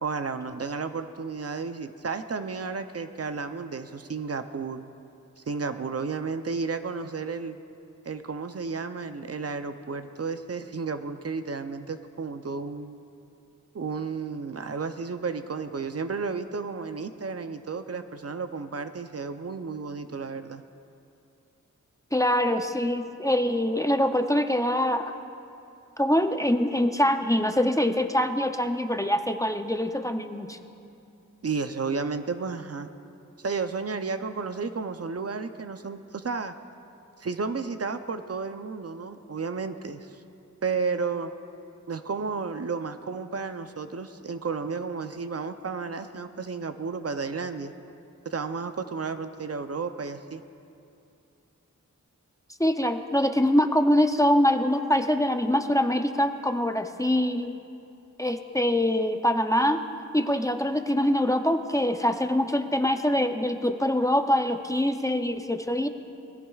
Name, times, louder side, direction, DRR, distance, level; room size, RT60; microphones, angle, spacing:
voice 1, 0.0-4.8 5.4-7.6 8.0-13.0 13.7-20.6 31.4-32.9 33.4-36.5 37.2-40.2 40.6-41.3 41.9-47.7 48.3-50.4, right 4 dB, 50° right, 9 dB, 0.6 m, -32 dB
voice 2, 22.1-25.1 26.0-30.6 52.6-57.5 58.2-59.8 60.1-65.9, left 1 dB, 10° left, 6 dB, 0.6 m, -24 dB
21.0 x 15.5 x 2.4 m, 2.6 s
wide cardioid pair, 75°, 31 cm